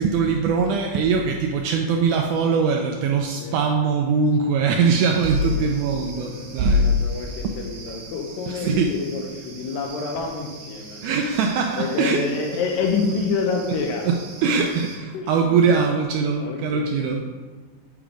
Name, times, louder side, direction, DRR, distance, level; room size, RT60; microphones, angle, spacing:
voice 1, 0.0-7.0 7.4-7.5 8.4-9.0 11.0-12.3 13.7-17.3, right 4 dB, 85° right, 3 dB, 1.8 m, -21 dB
sound 1, 5.0-15.0, right 4 dB, 65° right, 1.7 m, -43 dB
voice 2, 5.4-5.9 6.1-11.0 11.8-14.1 15.1-15.7 16.4-16.9, left 4 dB, 85° left, 3 dB, 2.4 m, -28 dB
7.2 x 3.4 x 4.9 m, 1.4 s
omnidirectional pair, 3.9 m